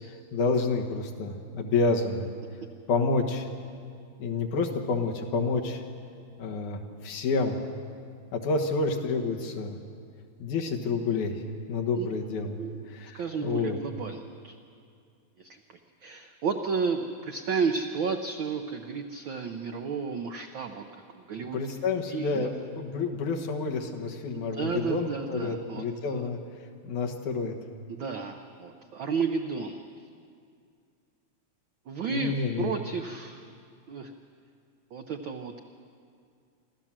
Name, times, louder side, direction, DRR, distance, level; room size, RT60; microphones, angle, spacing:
voice 1, 0.3-2.3 2.9-3.5 4.2-5.8 6.4-7.6 8.3-9.8 10.4-11.4 11.7-12.6 12.9-13.8 21.5-26.4 26.8-27.5 32.1-32.7, left 4 dB, 85° left, 1 dB, 2.9 m, -29 dB
voice 2, 13.0-14.6 15.4-20.8 21.1-21.6 22.1-22.5 24.3-26.3 27.9-29.9 31.9-33.4 33.9-34.1 34.9-35.6, right 5 dB, 90° right, 5 dB, 1.0 m, -32 dB
26.0 x 14.0 x 7.5 m, 2.3 s
omnidirectional pair, 3.3 m